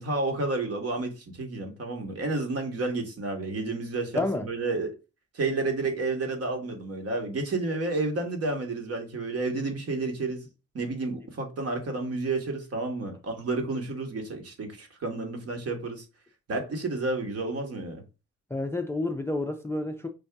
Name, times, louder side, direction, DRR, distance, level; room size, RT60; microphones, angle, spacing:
voice 1, 0.0-4.9 5.3-10.5 10.7-16.0 16.5-18.0, right 3 dB, 50° right, 1.5 m, -31 dB
voice 2, 4.1-4.5 18.5-20.1, left 2 dB, 10° left, 0.4 m, -29 dB
5.3 x 2.6 x 3.4 m
cardioid pair, 90°, 30 cm